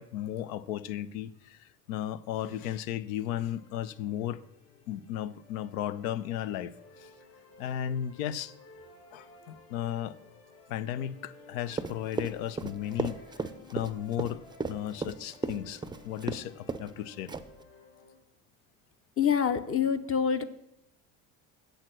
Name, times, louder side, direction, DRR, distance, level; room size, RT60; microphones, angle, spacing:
voice 1, 0.0-4.4 4.9-6.7 7.0-7.1 7.6-8.5 9.1-10.1 10.7-13.2 13.7-14.4 14.7-17.3, left 11 dB, 80° left, 0.6 m, -35 dB
sound 1, 3.4-18.1, left 2 dB, 55° left, 3.9 m, -55 dB
Run, 11.7-16.4 16.7-16.9 17.3-17.6, right 4 dB, 10° right, 0.4 m, -34 dB
voice 2, 19.2-20.4, left 7 dB, 35° left, 0.7 m, -26 dB
7.8 x 6.4 x 6.1 m
hypercardioid pair, 70°, 41 cm